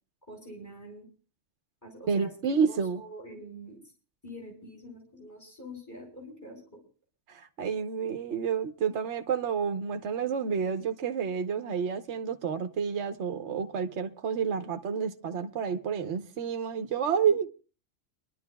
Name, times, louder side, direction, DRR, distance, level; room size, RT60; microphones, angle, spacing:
voice 1, 0.3-1.1 1.8-2.3 2.7-3.8 4.2-6.8 17.3-17.4, equal, 15° left, 5.5 m, -45 dB
voice 2, 2.1-3.0 7.3-17.5, right 6 dB, 70° right, 1.2 m, -29 dB
29.5 x 11.5 x 2.3 m
omnidirectional pair, 1.3 m